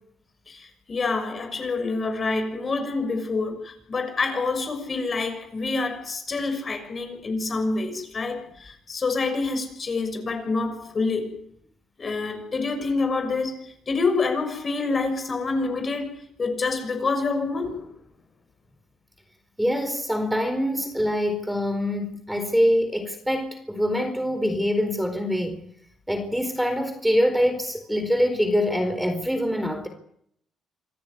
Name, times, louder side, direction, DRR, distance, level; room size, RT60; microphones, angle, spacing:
voice 1, 0.5-11.4 12.0-16.1 16.4-17.9, left 3 dB, 40° left, 6.4 m, -27 dB
voice 2, 19.6-25.6 26.1-29.9, equal, 5° right, 4.3 m, -24 dB
26.5 x 15.0 x 9.4 m
cardioid pair, 90°, 0 cm